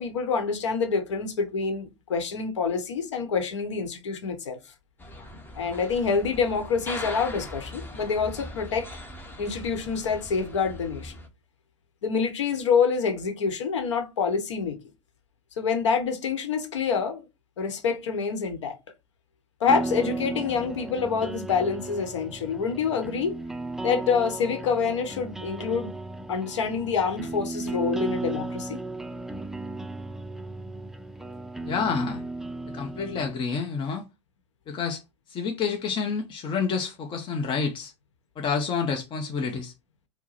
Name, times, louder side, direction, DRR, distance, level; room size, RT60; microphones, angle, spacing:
voice 1, 0.0-4.6 5.6-8.9 9.4-11.2 12.0-14.8 15.6-17.2 17.6-18.8 19.6-23.4 23.8-25.9 26.3-28.8, left 5 dB, 80° left, 1.0 m, -27 dB
sound 1, 5.0-11.3, left 1 dB, 15° left, 1.1 m, -40 dB
sound 2, 19.7-33.3, right 2 dB, 5° right, 0.4 m, -35 dB
voice 2, 31.6-32.2 32.7-34.0 34.7-35.0 35.3-37.9 38.4-39.7, left 5 dB, 30° left, 0.8 m, -28 dB
4.6 x 2.2 x 4.1 m
hypercardioid pair, 90°, 15 cm